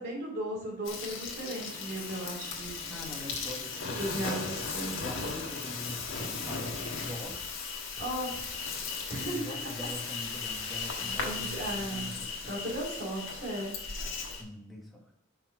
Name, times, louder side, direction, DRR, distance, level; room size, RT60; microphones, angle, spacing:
voice 1, 0.0-2.8 4.0-5.0 8.0-8.4 9.1-9.5 11.0-12.1 12.5-13.7, right 1 dB, 50° right, -3 dB, 3.2 m, -36 dB
Insect, 0.8-14.4, left 4 dB, 65° left, 1.4 m, -37 dB
voice 2, 2.9-4.6 5.0-7.4 9.2-12.6 14.3-15.1, left 1 dB, ahead, -2 dB, 1.4 m, -43 dB
sound 1, 3.3-8.6, left 1 dB, 40° left, 1.8 m, -51 dB
5.8 x 5.6 x 4.8 m, 0.77 s
head